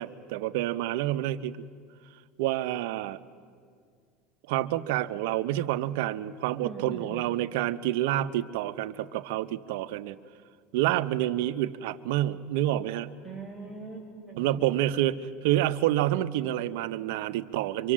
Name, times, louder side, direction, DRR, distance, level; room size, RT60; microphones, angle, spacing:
voice 1, 0.0-1.7 2.4-3.2 4.5-10.2 10.7-13.1 14.4-15.2 15.4-17.9, right 14 dB, 75° right, 11 dB, 0.8 m, -28 dB
voice 2, 6.6-7.4 13.2-14.7, right 3 dB, 15° left, 1 dB, 6.9 m, -42 dB
24.5 x 24.5 x 7.5 m, 2.1 s
supercardioid pair, 125°, 0 cm